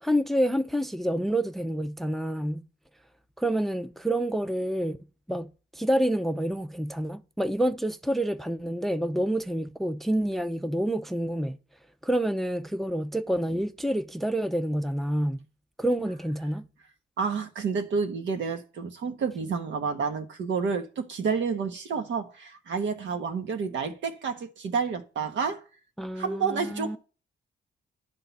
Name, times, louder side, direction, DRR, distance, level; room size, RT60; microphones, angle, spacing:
voice 1, 0.0-2.7 3.4-5.0 5.3-11.6 12.0-15.4 15.8-16.7 26.0-27.0, right 1 dB, ahead, 0.5 m, -28 dB
voice 2, 17.2-25.6 26.2-27.0, right 5 dB, 70° right, 1.4 m, -29 dB
11.0 x 3.8 x 7.1 m
cardioid pair, 90°, 20 cm